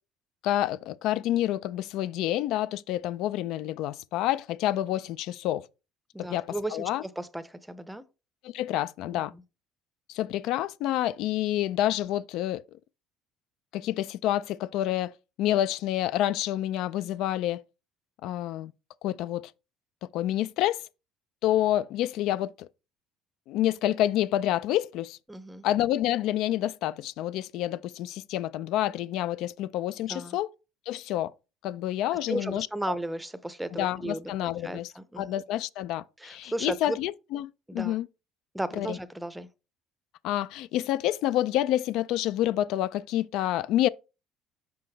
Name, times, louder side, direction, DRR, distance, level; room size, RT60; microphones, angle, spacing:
voice 1, 0.4-5.7 6.2-7.0 8.4-9.3 10.1-12.6 13.7-15.1 15.4-17.6 18.2-18.7 19.0-19.5 20.0-20.8 21.4-22.7 23.5-25.2 25.6-30.5 30.9-31.3 31.6-33.0 33.7-38.1 38.7-39.0 40.2-43.9, left 13 dB, 70° left, 0.3 m, -28 dB
voice 2, 6.1-8.0 9.1-9.4 25.3-25.7 30.1-30.4 32.3-35.4 36.2-37.0 37.7-38.0 38.5-39.5, right 1 dB, 5° right, 0.6 m, -35 dB
5.8 x 5.0 x 3.3 m
supercardioid pair, 105°, 0 cm